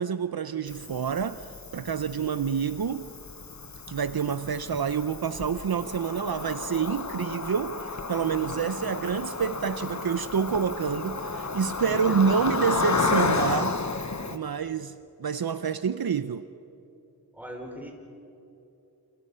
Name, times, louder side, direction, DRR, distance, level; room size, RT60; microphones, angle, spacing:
voice 1, 0.0-3.1 3.9-13.8 14.3-14.9 15.2-16.4, right 6 dB, 70° right, 0.7 m, -28 dB
Cricket, 0.7-14.4, left 4 dB, 45° left, 1.2 m, -32 dB
voice 2, 11.8-12.2 17.3-17.9, equal, 5° right, 5.0 m, -39 dB
28.5 x 28.5 x 5.6 m
wide cardioid pair, 75°, 39 cm